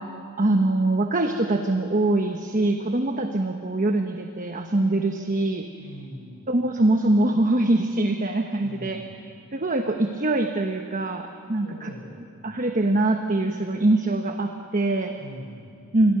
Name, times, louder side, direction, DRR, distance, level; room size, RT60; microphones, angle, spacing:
voice 1, 0.0-5.6 6.5-9.0 9.5-11.9 12.4-15.1 15.9-16.2, right 2 dB, 40° right, 4 dB, 1.1 m, -23 dB
voice 2, 5.8-6.4 8.6-9.1 11.6-12.2 15.1-15.8, equal, 60° left, -1 dB, 7.1 m, -42 dB
27.5 x 23.0 x 6.8 m, 2.5 s
head